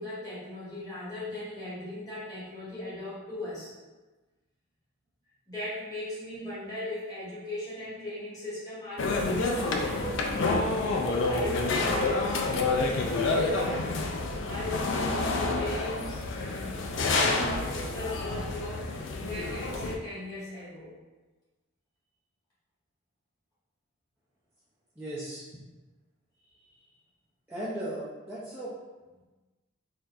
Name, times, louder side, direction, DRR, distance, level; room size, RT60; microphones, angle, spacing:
voice 1, 0.0-3.7 5.5-21.0, left 1 dB, 20° left, -10 dB, 1.4 m, -39 dB
sound 1, 9.0-19.9, left 3 dB, 60° left, 0.4 m, -28 dB
voice 2, 25.0-25.5 27.5-28.7, right 1 dB, 10° right, -11 dB, 0.5 m, -36 dB
4.1 x 2.7 x 2.5 m, 1.2 s
head